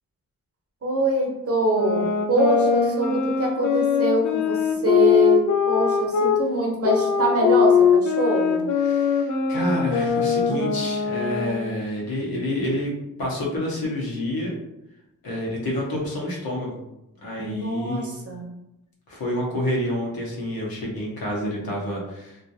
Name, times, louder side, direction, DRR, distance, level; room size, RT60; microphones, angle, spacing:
voice 1, 0.8-8.7 17.4-18.5, right 2 dB, 40° right, -1 dB, 0.8 m, -24 dB
sound 1, 1.7-6.4 6.8-11.8, left 7 dB, 55° left, 0.5 m, -21 dB
voice 2, 8.8-12.9 13.2-14.5 15.2-16.8 17.2-18.1 19.1-22.4, left 1 dB, 75° left, -4 dB, 0.9 m, -28 dB
2.4 x 2.1 x 2.7 m, 0.89 s
cardioid pair, 50°, 36 cm